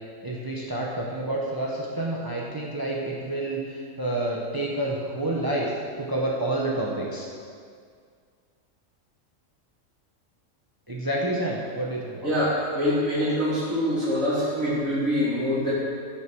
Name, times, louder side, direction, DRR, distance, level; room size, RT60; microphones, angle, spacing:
voice 1, 0.2-7.3 10.9-12.3, right 1 dB, 15° right, -3 dB, 1.2 m, -29 dB
voice 2, 12.2-15.7, equal, 80° right, -9 dB, 3.8 m, -24 dB
14.5 x 6.9 x 6.2 m, 2.1 s
omnidirectional pair, 1.4 m